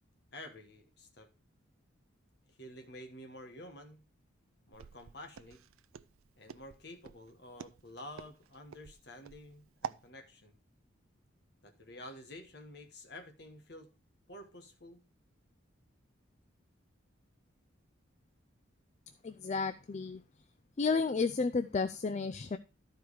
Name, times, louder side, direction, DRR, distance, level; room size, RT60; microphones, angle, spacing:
voice 1, 0.3-1.3 2.5-4.0 4.7-5.6 6.4-10.6 11.6-13.9 14.3-15.0, left 1 dB, 50° left, 1.4 m, -50 dB
Walk footsteps, 4.7-10.1, right 7 dB, 85° right, 0.4 m, -47 dB
voice 2, 19.2-20.2 20.8-22.6, left 4 dB, 35° left, 0.3 m, -32 dB
12.0 x 4.6 x 4.7 m
head